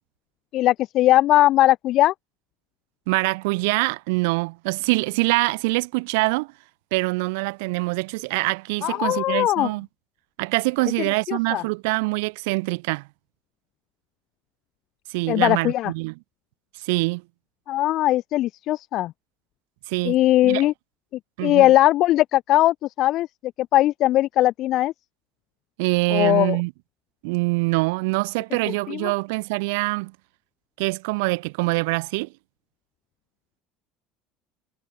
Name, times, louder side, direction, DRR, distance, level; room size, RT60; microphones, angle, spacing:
voice 1, 0.5-2.1 8.8-9.7 11.3-11.6 15.3-15.9 17.7-19.1 20.0-20.7 21.4-23.3 23.6-24.9 26.1-26.6 28.9-29.1, left 15 dB, 55° left, 0.6 m, -19 dB
voice 2, 3.1-6.5 6.9-9.9 10.4-13.0 15.1-16.1 16.8-17.2 19.9-20.2 20.4-20.7 21.4-21.7 25.8-26.7 27.2-30.1 30.8-32.3, right 27 dB, 90° right, 1.3 m, -24 dB
cardioid pair, 130°, 0 cm